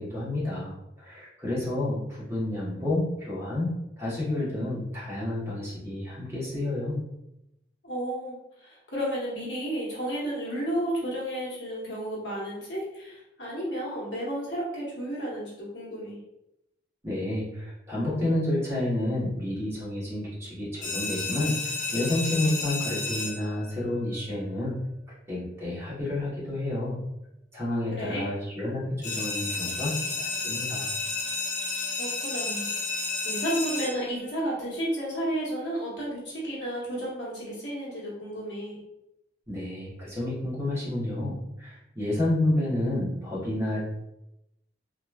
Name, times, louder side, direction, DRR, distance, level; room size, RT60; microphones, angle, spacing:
voice 1, 0.0-7.0 17.0-24.8 25.3-27.0 27.5-30.9 39.5-43.8, left 1 dB, 15° right, -8 dB, 1.0 m, -30 dB
voice 2, 7.8-16.2 27.9-28.3 32.0-32.7 33.2-38.8, right 1 dB, 75° left, -6 dB, 1.1 m, -32 dB
sound 1, 20.8-23.7 29.0-34.2, left 3 dB, 40° left, 0.6 m, -32 dB
3.0 x 2.2 x 2.2 m, 0.86 s
head